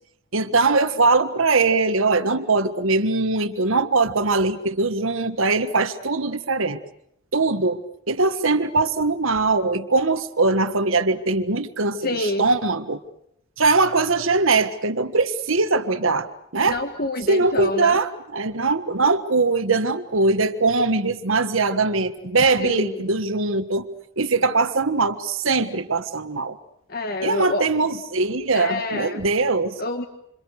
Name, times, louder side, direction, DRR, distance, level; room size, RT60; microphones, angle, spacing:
voice 1, 0.3-6.8 7.3-7.8 8.1-13.0 13.6-16.8 17.3-23.9 24.2-26.6 27.2-29.8, right 3 dB, 75° right, 10 dB, 1.6 m, -21 dB
voice 2, 12.0-12.5 16.6-18.0 22.6-23.1 26.9-27.6 28.5-29.2 29.8-30.1, left 2 dB, 45° left, 7 dB, 1.6 m, -27 dB
28.0 x 27.5 x 6.7 m, 0.75 s
head